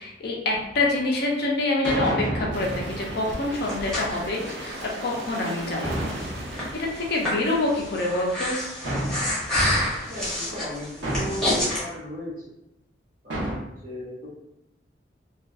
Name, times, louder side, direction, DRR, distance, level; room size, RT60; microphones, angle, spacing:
voice 1, 0.0-6.0 6.7-8.6, left 2 dB, 55° left, -1 dB, 0.4 m, -26 dB
sound 1, 0.7-0.9 1.8-4.5 5.8-7.6 8.8-9.8 11.0-11.7 13.3-13.6, right 1 dB, 85° right, 0.8 m, -31 dB
sound 2, 2.5-7.9, right 2 dB, 65° right, 0.4 m, -39 dB
Breathing, 3.3-11.8, left 1 dB, 5° left, 0.7 m, -29 dB
voice 2, 10.0-12.5 13.2-14.3, left 1 dB, 45° right, -7 dB, 1.1 m, -36 dB
2.5 x 2.3 x 2.3 m, 0.85 s
head